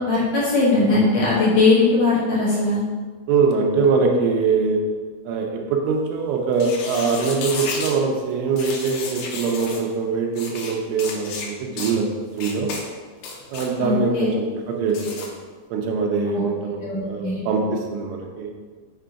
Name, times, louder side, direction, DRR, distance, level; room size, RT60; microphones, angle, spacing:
voice 1, 0.0-2.8 13.8-14.3 16.3-16.4 16.8-17.4, left 3 dB, 55° left, -8 dB, 2.1 m, -19 dB
voice 2, 3.3-4.8 5.3-12.7 13.5-15.3 15.7-18.5, right 4 dB, 90° right, 2 dB, 2.7 m, -23 dB
sound 1, 6.5-8.0 8.6-9.8 10.3-10.7 11.0-11.5 11.8-12.0 12.4-12.8 13.2-13.7 14.9-15.3, left 4 dB, 80° left, 2.7 m, -32 dB
6.5 x 3.9 x 4.7 m, 1.5 s
omnidirectional pair, 4.3 m